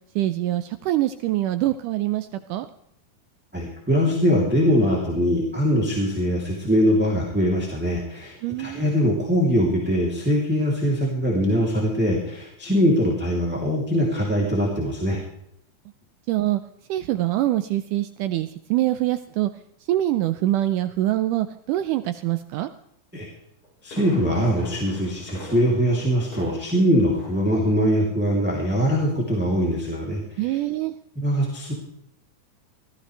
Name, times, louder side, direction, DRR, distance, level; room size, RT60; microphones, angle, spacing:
voice 1, 0.2-2.7 8.4-8.8 16.3-16.6 16.9-19.5 19.9-22.7 30.4-30.9, right 14 dB, 80° right, 10 dB, 1.9 m, -24 dB
voice 2, 3.5-15.2 23.1-23.3 23.8-30.4 31.1-31.7, equal, 5° right, -4 dB, 2.4 m, -22 dB
Fireworks, 23.4-26.9 27.2-27.6 27.9-28.0, left 1 dB, 35° left, 5.4 m, -41 dB
17.5 x 14.0 x 3.3 m, 0.74 s
omnidirectional pair, 4.1 m